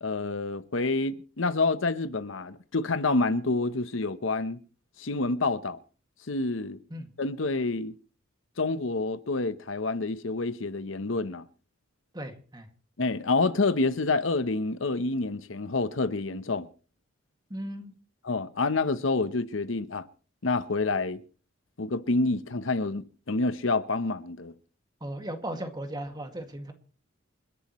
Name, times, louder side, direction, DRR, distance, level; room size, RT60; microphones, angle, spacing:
voice 1, 0.0-4.6 5.0-5.8 6.3-6.8 7.2-7.9 8.6-11.4 13.0-16.7 18.2-20.0 20.4-21.2 21.8-24.5, left 3 dB, 75° left, 0.9 m, -28 dB
voice 2, 12.1-12.7 17.5-17.9 25.0-26.7, right 1 dB, 20° right, 2.1 m, -36 dB
28.5 x 11.0 x 3.1 m
head